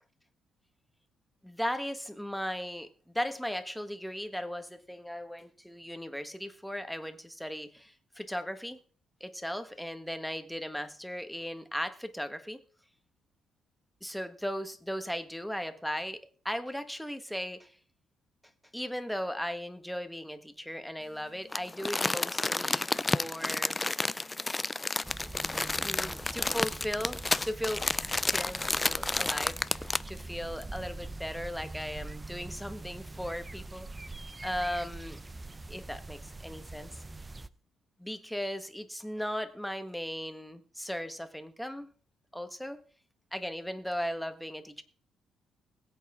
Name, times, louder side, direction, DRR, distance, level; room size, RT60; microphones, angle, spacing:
voice 1, 1.4-8.8 9.2-12.6 14.0-17.8 18.7-23.8 25.8-27.9 28.2-33.9 34.4-35.2 35.7-37.0 38.0-41.9 42.3-42.8 43.3-44.8, equal, ahead, 9 dB, 1.5 m, -37 dB
Crumpling crinkling, 21.5-30.2 30.6-30.7, left 2 dB, 20° left, 0.5 m, -31 dB
sound 1, 25.0-37.5, right 2 dB, 20° right, 0.7 m, -44 dB
21.0 x 8.4 x 3.7 m, 0.43 s
cardioid pair, 90°, 0 cm